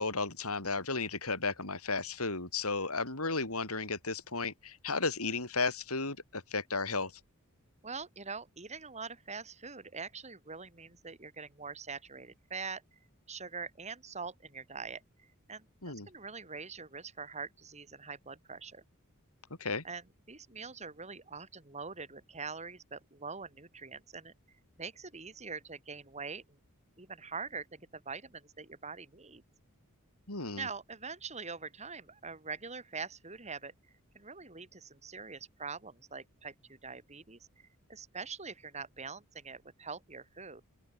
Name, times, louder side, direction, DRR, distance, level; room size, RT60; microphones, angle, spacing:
voice 1, 0.0-7.1 15.8-16.1 19.6-19.8 30.3-30.7, left 3 dB, 75° left, 7.1 m, -34 dB
voice 2, 7.8-13.0 13.3-18.8 19.8-26.6 27.0-29.4 30.6-33.7 34.1-40.6, right 4 dB, 30° right, 4.1 m, -44 dB
open air
head